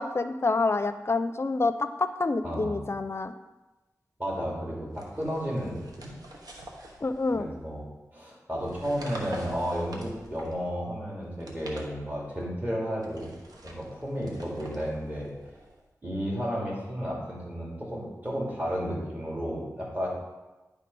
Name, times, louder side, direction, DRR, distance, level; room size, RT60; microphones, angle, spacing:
voice 1, 0.0-3.3 7.0-7.5, left 3 dB, 45° left, 10 dB, 0.5 m, -27 dB
voice 2, 2.4-2.8 4.2-6.1 7.3-7.9 8.1-13.3 13.6-15.3 16.0-20.1, equal, 25° right, -5 dB, 2.5 m, -32 dB
sound 1, 4.9-7.7 8.5-10.7 11.3-12.4 13.0-15.8, right 1 dB, 90° right, 1.1 m, -47 dB
9.9 x 3.6 x 5.4 m, 1.1 s
wide cardioid pair, 60°, 6 cm